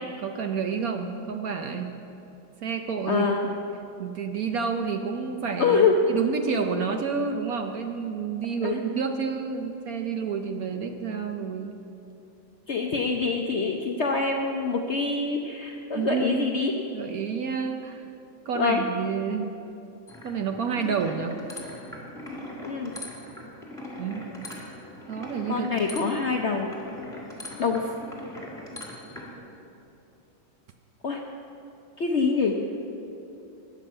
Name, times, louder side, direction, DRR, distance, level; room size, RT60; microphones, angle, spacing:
voice 1, 0.2-1.9 2.6-3.3 4.0-11.7 15.9-16.6 16.9-18.0 18.5-19.5 20.2-21.4 24.0-24.3 25.1-25.7, right 6 dB, 65° right, 5 dB, 1.0 m, -29 dB
voice 2, 3.1-3.5 5.6-5.9 8.6-8.8 12.7-16.7 18.5-18.8 22.6-22.9 25.5-26.7 27.6-27.9 31.0-31.2 32.0-32.6, left 5 dB, 60° left, 2 dB, 0.7 m, -25 dB
sound 1, 20.1-29.3, left 1 dB, ahead, 1.9 m, -41 dB
14.5 x 10.0 x 5.5 m, 2.8 s
omnidirectional pair, 2.0 m